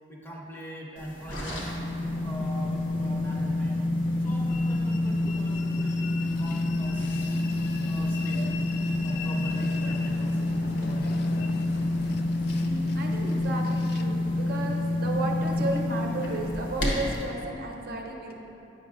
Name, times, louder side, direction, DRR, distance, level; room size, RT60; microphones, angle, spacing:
voice 1, 0.1-1.8 2.2-3.8 4.2-7.5 7.8-8.4 9.0-11.2, equal, 10° left, -2 dB, 0.7 m, -42 dB
sound 1, 1.0-17.3, left 2 dB, 75° left, 1.3 m, -28 dB
Train, 4.5-16.9, left 5 dB, 60° left, 0.3 m, -43 dB
voice 2, 12.6-18.3, right 2 dB, 55° right, 0 dB, 0.6 m, -34 dB
9.3 x 5.5 x 2.5 m, 2.9 s
head